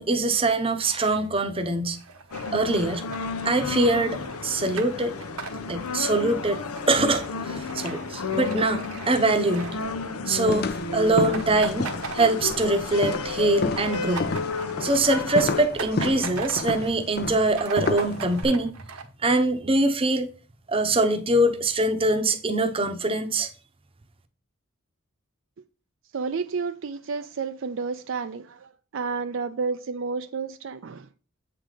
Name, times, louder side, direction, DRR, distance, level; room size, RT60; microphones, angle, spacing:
voice 1, 0.0-2.0 2.5-3.0 3.4-5.2 5.7-9.8 10.3-11.9 12.1-14.3 14.8-18.7 19.2-20.3 20.7-23.5, right 2 dB, 25° right, 0.8 m, -23 dB
sound 1, 2.0-10.4 10.6-10.8 11.1-12.9 13.2-16.9 17.3-17.4 17.5-19.0, right 5 dB, 85° right, 1.2 m, -39 dB
sound 2, 2.3-15.6, left 4 dB, 85° left, 0.8 m, -32 dB
sound 3, 10.5-18.4, left 3 dB, 45° left, 0.7 m, -31 dB
voice 2, 26.1-31.1, right 5 dB, 55° right, 0.4 m, -31 dB
8.5 x 4.0 x 4.9 m
head